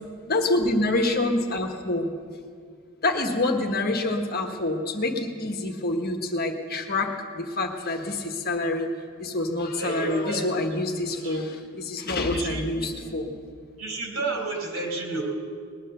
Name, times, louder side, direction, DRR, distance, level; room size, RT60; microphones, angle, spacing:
voice 1, 0.3-2.1 3.0-7.1 7.3-8.9 9.2-13.3, left 2 dB, 45° left, 4 dB, 1.3 m, -26 dB
voice 2, 9.8-10.5 11.2-11.4 12.3-13.1 13.8-15.2, right 3 dB, 65° right, 1 dB, 3.2 m, -31 dB
20.0 x 10.0 x 6.7 m, 2.2 s
head